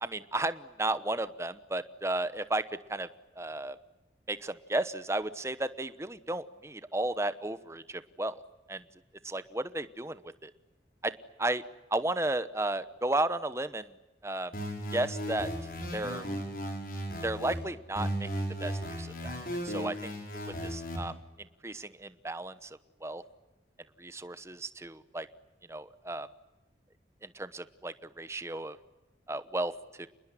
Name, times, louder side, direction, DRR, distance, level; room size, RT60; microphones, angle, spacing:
voice 1, 0.0-3.1 3.4-3.8 4.3-8.4 8.7-8.8 9.2-10.5 11.0-11.1 11.4-11.6 11.9-13.9 14.2-14.5 14.9-15.5 15.9-16.3 17.2-18.3 18.6-19.4 19.6-20.1 20.6-21.1 21.6-23.2 24.0-25.3 25.7-26.3 27.2-28.8 29.3-29.7 30.0-30.1, right 2 dB, 15° right, 13 dB, 0.9 m, -33 dB
sound 1, 14.5-17.5 17.9-21.0, equal, 50° left, 6.6 m, -36 dB
28.0 x 21.0 x 10.0 m, 1.1 s
head